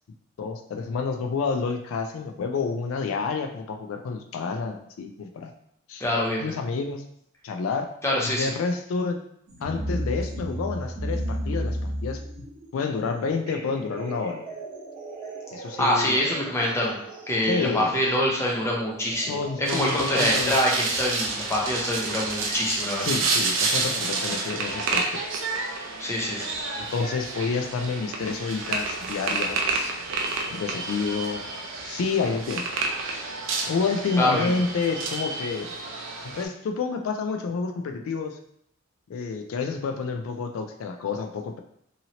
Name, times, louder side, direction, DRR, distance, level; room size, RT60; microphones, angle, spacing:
voice 1, 0.4-5.5 5.9-6.0 6.4-7.0 7.4-7.9 8.2-9.2 9.6-12.2 12.7-14.4 15.5-16.2 17.4-18.0 19.3-20.6 23.0-25.2 26.9-29.9 30.5-31.5 31.9-32.6 33.7-35.7 36.2-38.4 39.1-41.6, left 4 dB, 80° left, 5 dB, 0.3 m, -29 dB
voice 2, 6.0-6.5 8.0-8.5 15.8-17.0 17.3-23.1 26.0-26.6 34.2-34.5, left 1 dB, 15° left, -3 dB, 0.6 m, -25 dB
sound 1, 9.5-25.4 26.6-26.7 27.5-27.6 28.2-28.3, right 1 dB, 40° right, 0.9 m, -36 dB
sound 2, 19.6-36.4, right 3 dB, 65° right, 0.5 m, -29 dB
2.8 x 2.7 x 2.8 m, 0.72 s
head